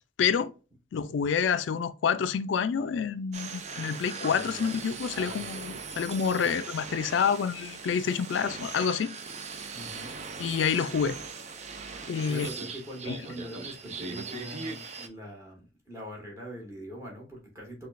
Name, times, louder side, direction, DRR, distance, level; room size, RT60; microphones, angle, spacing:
voice 1, 0.2-0.5 0.9-9.2 10.4-11.2 12.1-12.5 13.1-13.2, left 6 dB, 75° left, 0.3 m, -28 dB
sound 1, 3.3-15.1, right 4 dB, 35° right, 0.4 m, -40 dB
voice 2, 4.2-4.7 5.1-5.7 9.7-10.2 11.9-17.9, equal, 15° right, 1.3 m, -43 dB
5.7 x 2.3 x 2.4 m
head